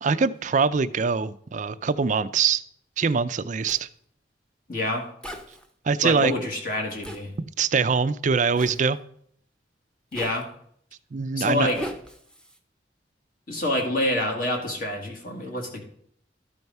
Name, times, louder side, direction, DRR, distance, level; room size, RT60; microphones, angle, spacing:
voice 1, 0.0-2.6 3.0-3.9 5.8-6.3 7.4-9.0 11.1-11.7, right 5 dB, 45° right, 0.4 m, -23 dB
Zipper (clothing), 3.7-3.8 5.2-5.7 7.0-7.2 8.5-8.8 10.1-10.4 11.7-12.6, equal, 5° left, 0.8 m, -38 dB
voice 2, 4.7-5.1 6.0-7.3 10.1-10.5 11.4-11.9 13.5-15.8, left 1 dB, 50° left, 1.9 m, -27 dB
13.0 x 4.6 x 5.4 m
head